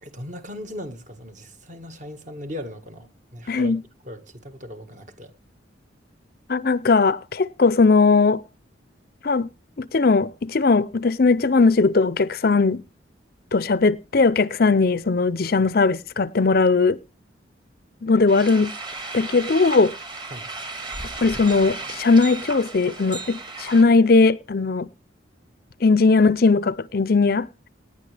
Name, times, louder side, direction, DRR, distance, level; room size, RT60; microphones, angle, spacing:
voice 1, 0.0-3.7 4.0-5.3 20.3-20.5, left 1 dB, 40° right, 1.7 m, -38 dB
voice 2, 3.5-3.8 6.5-8.4 9.2-9.5 9.8-12.8 13.5-17.0 18.0-18.8 19.1-19.9 21.2-24.9 25.8-27.5, left 4 dB, 50° left, 0.6 m, -19 dB
sound 1, 18.3-23.8, right 3 dB, 25° right, 1.8 m, -35 dB
18.5 x 11.0 x 3.4 m
head